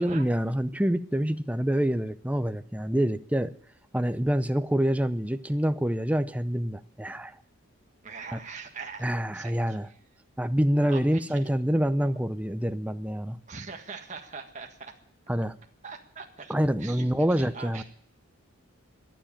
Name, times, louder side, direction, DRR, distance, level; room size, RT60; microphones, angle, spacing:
voice 1, 0.0-3.5 3.9-7.3 8.3-8.4 9.0-9.9 10.4-13.4 15.3-15.5 16.5-17.8, equal, 5° right, 11 dB, 0.6 m, -26 dB
voice 2, 8.0-10.0 10.9-11.4 13.5-14.9 15.8-16.5 16.8-17.8, right 5 dB, 35° right, 3 dB, 1.6 m, -42 dB
21.5 x 7.5 x 8.9 m, 0.64 s
head